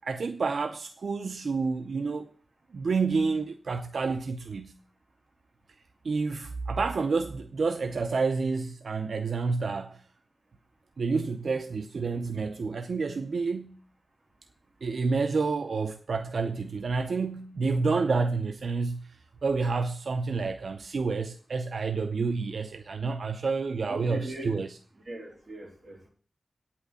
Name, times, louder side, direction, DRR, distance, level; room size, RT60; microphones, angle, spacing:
voice 1, 0.0-2.3 2.7-4.8 6.0-10.0 11.0-13.8 14.8-24.7, right 4 dB, 80° right, 0.6 m, -29 dB
voice 2, 23.9-24.6 25.1-26.1, right 1 dB, 45° right, 3.5 m, -40 dB
9.1 x 5.8 x 8.1 m
wide cardioid pair, 70°, 0 cm